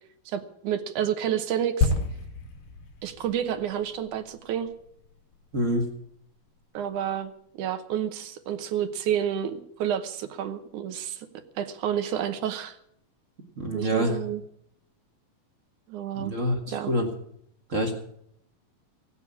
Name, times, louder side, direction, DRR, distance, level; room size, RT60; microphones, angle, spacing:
voice 1, 0.3-1.9 3.0-4.7 6.7-7.3 7.6-11.3 11.6-12.8 13.7-14.4 15.9-16.3 16.7-16.9, right 9 dB, 70° right, 10 dB, 2.1 m, -29 dB
sound 1, 1.8-5.5 5.7-5.9, left 3 dB, 85° left, 3.9 m, -30 dB
voice 2, 5.5-5.9 13.6-14.2 16.1-17.1 17.7-17.9, equal, 35° right, 2 dB, 1.3 m, -26 dB
17.5 x 8.4 x 8.5 m, 0.71 s
omnidirectional pair, 4.2 m